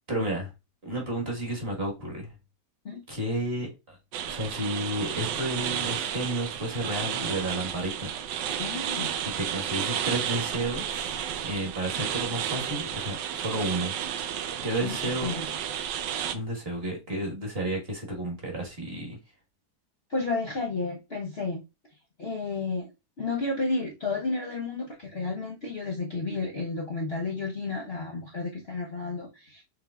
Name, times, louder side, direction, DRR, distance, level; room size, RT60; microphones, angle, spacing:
voice 1, 0.1-0.5 0.8-2.3 3.1-4.0 4.3-8.1 9.2-13.9 14.6-15.4 16.3-19.2, right 1 dB, 35° right, 1.6 m, -32 dB
sound 1, 4.1-16.4, right 9 dB, 90° right, 1.3 m, -32 dB
voice 2, 8.6-9.1 14.8-15.5 20.1-21.6 22.2-22.9 23.2-29.6, left 3 dB, 50° left, 0.8 m, -32 dB
6.6 x 3.4 x 2.3 m
omnidirectional pair, 1.9 m